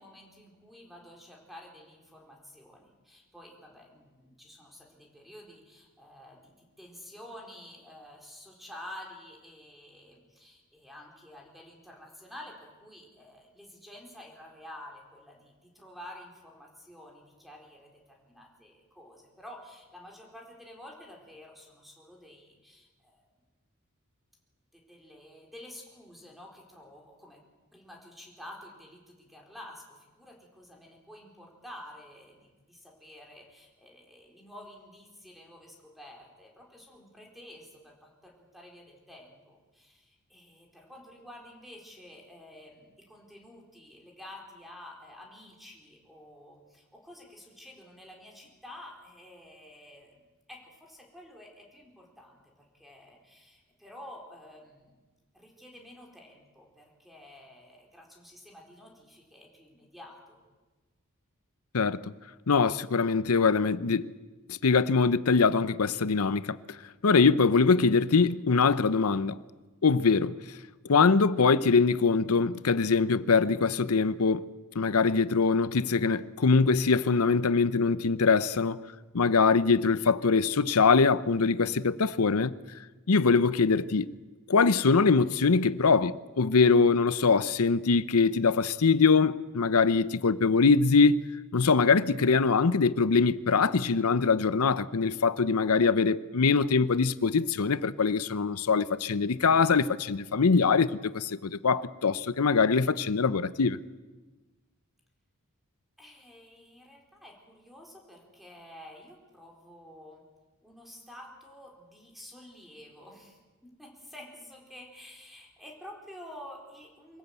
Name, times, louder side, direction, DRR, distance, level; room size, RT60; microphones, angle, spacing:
voice 1, 0.0-23.3 24.7-27.4 27.7-50.2 50.5-55.0 55.3-60.4 106.0-110.2 110.6-117.2, left 1 dB, ahead, 4.4 m, -50 dB
voice 2, 61.7-62.1 62.5-64.1 64.5-66.6 67.0-69.4 69.8-70.4 70.9-74.4 74.7-78.8 79.1-82.5 83.1-84.1 84.5-91.2 91.5-103.8, left 4 dB, 85° left, 0.7 m, -23 dB
24.5 x 16.5 x 8.1 m
head